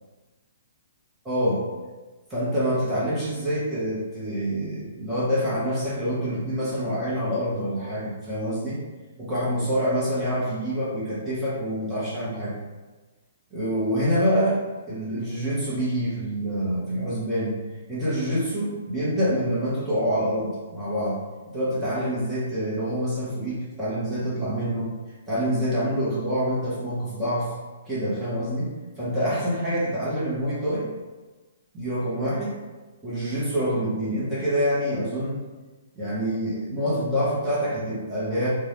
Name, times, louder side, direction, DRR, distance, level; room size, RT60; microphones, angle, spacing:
voice 1, 1.2-1.6 2.3-8.8 9.2-12.6 13.5-17.6 17.9-24.9 25.3-27.5 27.9-30.9 31.7-32.6 33.0-35.4 36.0-38.5, equal, 10° right, -10 dB, 0.9 m, -26 dB
2.5 x 2.2 x 3.4 m, 1.2 s
hypercardioid pair, 140°, 0 cm